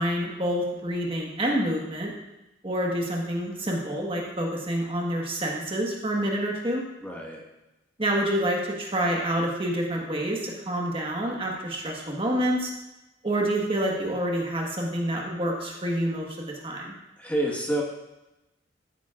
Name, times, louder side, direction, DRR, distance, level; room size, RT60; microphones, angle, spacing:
voice 1, 0.0-2.1 2.6-6.8 8.0-12.7 13.2-16.9, right 1 dB, 30° right, -1 dB, 1.4 m, -27 dB
voice 2, 7.0-7.4 17.2-17.8, right 1 dB, 10° left, -2 dB, 1.5 m, -28 dB
13.0 x 10.5 x 2.5 m, 0.97 s
head